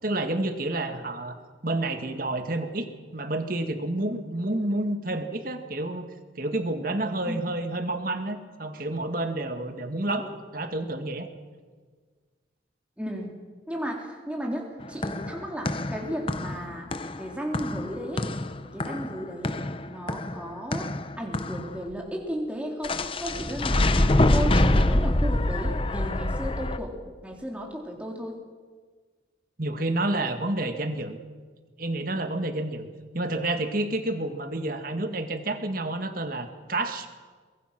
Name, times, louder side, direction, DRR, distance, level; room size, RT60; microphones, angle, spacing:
voice 1, 0.0-1.3 1.6-6.1 6.4-11.3 29.6-31.2 31.8-32.9 33.1-37.1, right 2 dB, 50° right, 6 dB, 2.0 m, -29 dB
voice 2, 13.0-13.3 13.7-16.9 17.2-18.2 18.7-19.6 19.8-20.9 21.2-26.9 27.2-28.3, equal, 5° right, -1 dB, 3.5 m, -34 dB
sound 1, 14.8-21.8 22.8-26.8, left 1 dB, 30° left, 0.8 m, -25 dB
23.0 x 21.5 x 6.1 m, 1.5 s
head